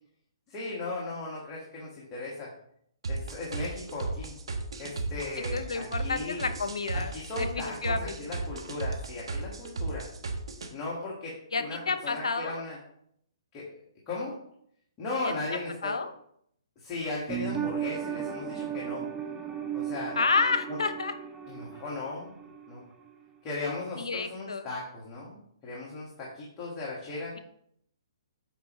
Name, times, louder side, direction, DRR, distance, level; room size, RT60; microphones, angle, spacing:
voice 1, 0.5-2.5 3.1-4.4 4.8-6.5 6.9-10.0 10.7-12.8 13.5-13.6 14.1-14.3 15.0-15.9 16.8-19.0 19.7-20.2 20.7-20.8 21.5-22.3 22.7-22.8 23.4-27.3, left 2 dB, 25° left, -5 dB, 1.7 m, -37 dB
sound 1, 3.0-10.7, right 3 dB, 80° right, 1.1 m, -34 dB
voice 2, 5.4-7.1 7.4-8.2 11.5-12.6 15.8-16.1 20.1-21.1 24.0-24.7, left 4 dB, 90° left, 10 dB, 0.7 m, -30 dB
sound 2, 17.3-22.8 23.1-23.2, right 9 dB, 15° right, 0.6 m, -36 dB
8.0 x 4.9 x 3.1 m, 0.69 s
hypercardioid pair, 145°, 3 cm